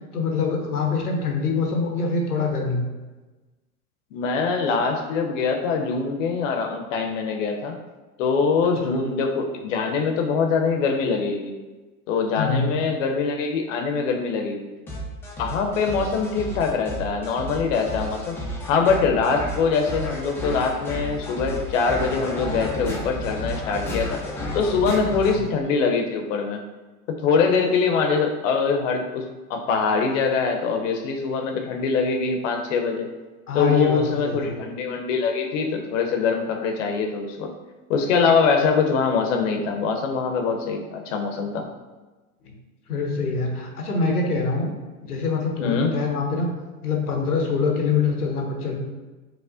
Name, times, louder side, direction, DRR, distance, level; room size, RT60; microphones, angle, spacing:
voice 1, 0.1-2.8 8.8-9.0 12.4-12.8 33.5-34.6 42.4-42.5 42.9-44.7 45.0-46.5 46.8-48.8, left 4 dB, 90° left, 1 dB, 0.7 m, -24 dB
voice 2, 4.1-7.8 8.2-11.5 12.1-14.7 15.4-18.4 18.7-24.2 24.5-26.6 27.1-33.1 33.5-37.5 37.9-41.6 45.6-45.9, left 5 dB, 60° left, 3 dB, 0.7 m, -23 dB
sound 1, 14.9-25.4, left 1 dB, 5° left, 0.3 m, -32 dB
4.8 x 2.1 x 2.5 m, 1.2 s
figure-of-eight pair, 90°, 44 cm